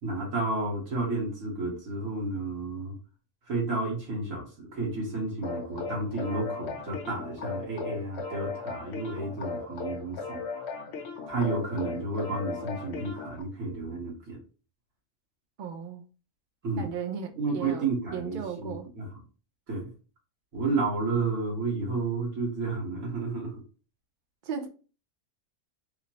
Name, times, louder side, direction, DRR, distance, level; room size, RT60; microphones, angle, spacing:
voice 1, 0.0-2.9 3.5-10.9 11.3-14.4 16.6-16.9 17.4-19.1 19.7-19.9 20.5-23.6, right 3 dB, 85° right, 1.7 m, -31 dB
sound 1, 5.4-13.4, left 4 dB, 60° left, 0.9 m, -37 dB
voice 2, 15.6-16.0 16.8-18.9 24.4-24.7, right 7 dB, 50° right, 0.6 m, -36 dB
4.9 x 2.0 x 2.8 m
omnidirectional pair, 1.4 m